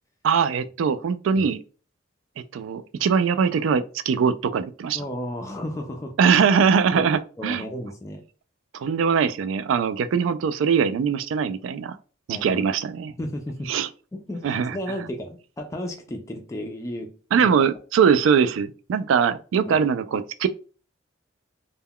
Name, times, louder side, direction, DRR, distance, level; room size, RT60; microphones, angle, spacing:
voice 1, 0.2-1.6 2.5-5.0 6.2-7.6 8.7-12.0 12.3-13.1 13.7-13.9 14.4-14.8 17.3-20.5, right 6 dB, 85° right, 0.3 m, -21 dB
voice 2, 4.9-6.2 6.8-8.3 12.3-12.6 13.2-13.7 14.1-17.5 19.7-19.8, left 1 dB, 15° left, 0.3 m, -34 dB
2.2 x 2.1 x 3.5 m
head